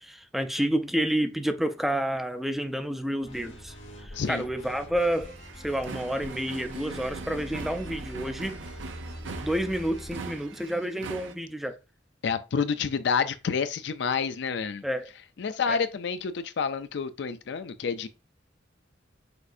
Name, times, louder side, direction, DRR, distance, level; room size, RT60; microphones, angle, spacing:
voice 1, 0.0-8.6 9.4-11.8 14.8-15.1 15.7-15.8, right 1 dB, ahead, 0.4 m, -29 dB
sound 1, 3.2-10.3, equal, 85° left, 1.4 m, -43 dB
voice 2, 4.1-4.4 12.2-14.8 15.4-18.1, left 6 dB, 65° left, 0.4 m, -29 dB
sound 2, 5.0-11.3, right 4 dB, 90° right, 0.5 m, -41 dB
6.1 x 2.7 x 2.5 m
head